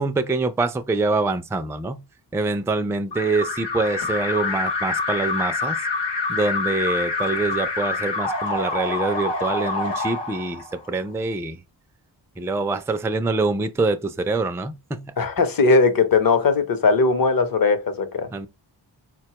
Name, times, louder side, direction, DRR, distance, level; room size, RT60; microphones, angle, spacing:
voice 1, 0.0-2.0 2.3-5.8 6.3-11.6 12.4-15.1 18.3-18.5, right 3 dB, 5° right, 0.3 m, -25 dB
Alarm, 3.1-11.0, left 3 dB, 85° left, 0.9 m, -26 dB
voice 2, 15.2-18.3, left 4 dB, 55° left, 0.8 m, -19 dB
4.0 x 2.2 x 2.8 m
cardioid pair, 55°, 42 cm